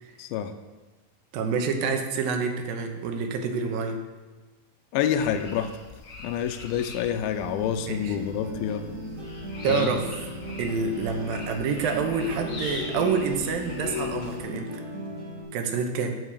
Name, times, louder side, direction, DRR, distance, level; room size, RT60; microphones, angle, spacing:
voice 1, 0.2-0.5 4.9-5.8 6.2-8.9 9.7-10.0, left 9 dB, 85° left, 8 dB, 2.4 m, -27 dB
voice 2, 1.3-4.0 7.9-8.2 9.6-10.1 10.6-14.8 15.5-16.2, right 5 dB, 80° right, 4 dB, 2.7 m, -27 dB
sound 1, 5.2-14.4, left 5 dB, 50° left, 1.1 m, -40 dB
sound 2, 7.4-15.4, equal, 50° right, 4.4 m, -38 dB
8.0 x 7.6 x 6.7 m, 1.2 s
omnidirectional pair, 4.2 m